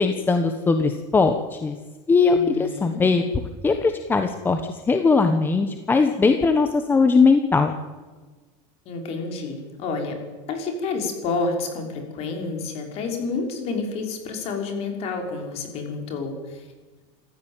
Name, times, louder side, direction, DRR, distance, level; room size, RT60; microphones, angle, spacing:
voice 1, 0.0-1.8 2.1-3.2 3.6-4.6 4.9-7.7, left 4 dB, 15° left, 6 dB, 1.2 m, -20 dB
voice 2, 2.3-3.0 8.9-10.2 10.5-16.6, left 4 dB, 40° left, 3 dB, 5.9 m, -29 dB
27.5 x 15.0 x 9.2 m, 1.3 s
supercardioid pair, 160°, 16 cm